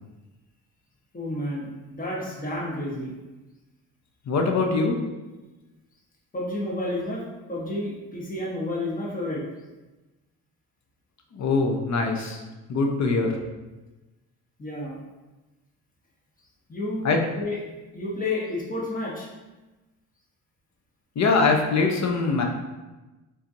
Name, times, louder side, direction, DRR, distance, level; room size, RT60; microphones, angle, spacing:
voice 1, 1.1-3.1 6.3-9.4 14.6-15.0 16.7-17.6 17.9-19.3, left 1 dB, 20° left, -4 dB, 1.2 m, -31 dB
voice 2, 4.3-5.0 11.3-12.4 12.7-13.3 17.0-17.2 21.2-22.5, left 3 dB, 45° left, 3 dB, 0.8 m, -22 dB
4.3 x 3.9 x 2.7 m, 1.1 s
cardioid pair, 80°, 38 cm